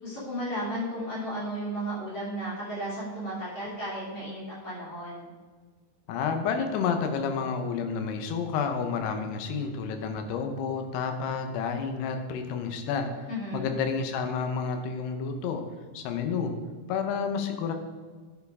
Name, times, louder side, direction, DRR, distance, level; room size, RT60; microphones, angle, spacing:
voice 1, 0.0-5.3 13.3-13.7, right 1 dB, 35° left, -8 dB, 3.6 m, -34 dB
voice 2, 6.1-15.6 15.9-16.5 16.9-17.7, left 6 dB, 80° left, 5 dB, 2.8 m, -30 dB
11.0 x 7.0 x 3.6 m, 1.5 s
omnidirectional pair, 4.9 m